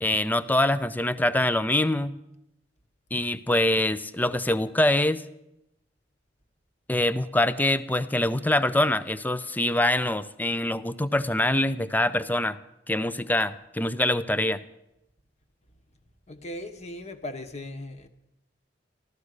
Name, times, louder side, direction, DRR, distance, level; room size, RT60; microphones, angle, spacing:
voice 1, 0.0-2.2 3.1-5.2 6.9-12.6 12.9-14.6, left 1 dB, 10° left, 14 dB, 0.5 m, -24 dB
voice 2, 16.3-18.1, left 1 dB, 35° left, 8 dB, 1.2 m, -38 dB
15.0 x 12.5 x 6.6 m, 0.87 s
head